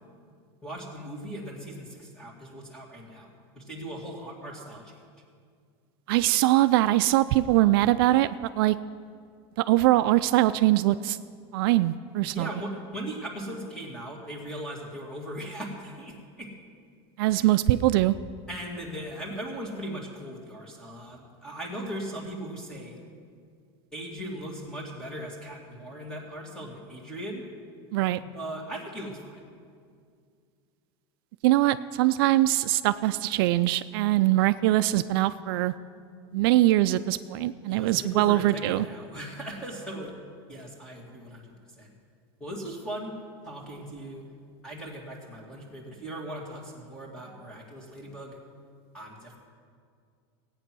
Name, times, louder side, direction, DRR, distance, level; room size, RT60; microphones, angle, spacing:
voice 1, 0.6-3.3 3.6-5.0 12.3-16.5 17.3-17.5 18.5-23.0 23.9-27.5 28.3-29.4 37.7-40.1 40.5-41.9 42.4-43.2 43.4-44.2 44.6-48.4 48.9-49.4, right 1 dB, 5° left, -1 dB, 2.2 m, -38 dB
voice 2, 6.1-8.8 9.6-11.2 11.5-12.5 17.2-18.1 27.9-28.2 31.4-35.7 36.3-38.9, right 16 dB, 65° right, 12 dB, 0.4 m, -22 dB
16.5 x 9.0 x 6.1 m, 2.2 s
supercardioid pair, 160°, 13 cm